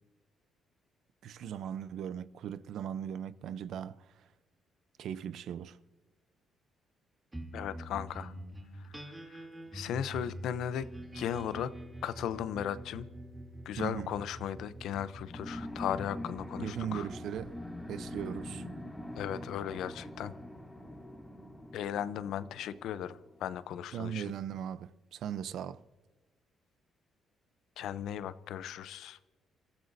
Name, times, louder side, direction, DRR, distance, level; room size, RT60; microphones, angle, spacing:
voice 1, 1.2-4.2 5.0-5.8 13.8-14.2 16.6-17.6 17.9-18.6 23.9-25.8, right 9 dB, 75° right, 0.6 m, -38 dB
sound 1, 7.3-22.0, right 1 dB, 15° right, 2.8 m, -47 dB
voice 2, 7.5-8.3 9.3-9.4 9.7-10.9 11.1-11.7 12.0-13.1 13.7-17.1 19.2-20.3 21.7-24.3 27.8-29.2, left 10 dB, 80° left, 0.6 m, -36 dB
sound 2, 15.3-23.4, left 1 dB, 10° left, 2.3 m, -44 dB
27.5 x 14.0 x 2.7 m
cardioid pair, 90°, 0 cm